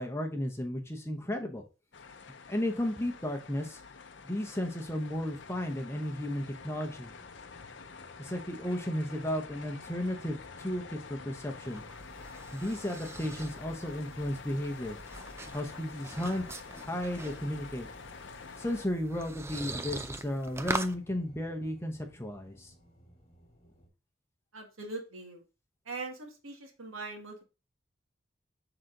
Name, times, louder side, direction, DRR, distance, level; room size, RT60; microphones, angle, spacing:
voice 1, 0.0-1.6 2.5-3.8 4.2-7.1 8.2-11.8 12.5-15.0 15.5-16.4 16.8-17.9 18.6-22.7, left 1 dB, 10° left, 3 dB, 0.9 m, -34 dB
sound 1, 1.9-18.9, left 5 dB, 60° left, 0.6 m, -48 dB
sound 2, 4.8-23.9, equal, 30° left, 1.9 m, -58 dB
sound 3, 11.3-20.9, right 2 dB, 10° right, 0.4 m, -42 dB
voice 2, 24.5-25.4 25.8-27.4, right 3 dB, 85° right, 2 dB, 1.6 m, -41 dB
6.3 x 3.9 x 3.8 m, 0.32 s
head